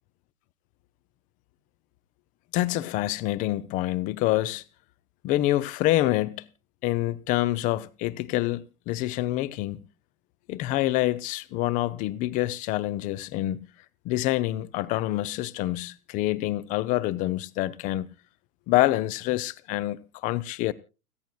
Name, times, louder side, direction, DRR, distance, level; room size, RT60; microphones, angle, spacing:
voice 1, 2.5-4.6 5.2-6.5 6.8-9.8 10.5-13.6 14.0-18.1 18.7-20.7, left 16 dB, 20° left, 0.6 m, -26 dB
30.0 x 10.0 x 2.2 m
figure-of-eight pair, 105°, 41 cm